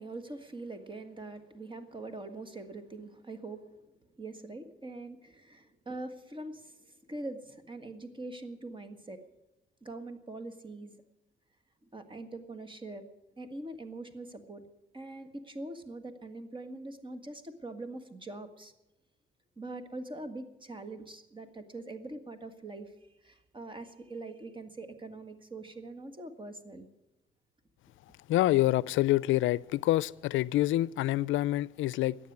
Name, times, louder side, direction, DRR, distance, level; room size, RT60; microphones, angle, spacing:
voice 1, 0.0-3.9 4.2-9.3 9.8-11.0 11.8-13.0 13.4-14.6 14.9-18.7 19.6-22.9 23.2-26.9, right 2 dB, 25° right, 1.7 m, -43 dB
voice 2, 28.3-32.2, left 16 dB, 80° left, 0.4 m, -27 dB
14.5 x 9.4 x 9.5 m
cardioid pair, 90°, 20 cm